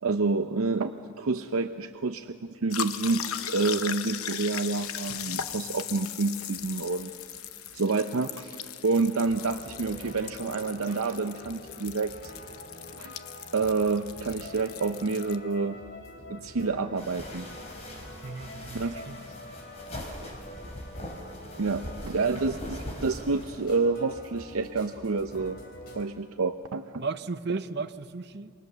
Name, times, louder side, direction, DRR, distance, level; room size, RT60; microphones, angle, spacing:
voice 1, 0.0-7.1 7.7-12.3 12.9-13.2 13.5-15.8 16.3-17.5 18.7-19.0 21.6-25.6 25.9-27.0, right 3 dB, 85° right, 0.7 m, -28 dB
sound 1, 2.7-15.4, left 9 dB, 85° left, 0.9 m, -38 dB
sound 2, 9.2-26.1, left 1 dB, 45° left, 3.5 m, -46 dB
sound 3, 17.0-23.7, left 1 dB, 30° left, 3.5 m, -41 dB
voice 2, 18.2-19.2 22.3-22.4 27.0-28.5, right 4 dB, 50° right, 0.7 m, -35 dB
28.0 x 23.0 x 6.9 m
head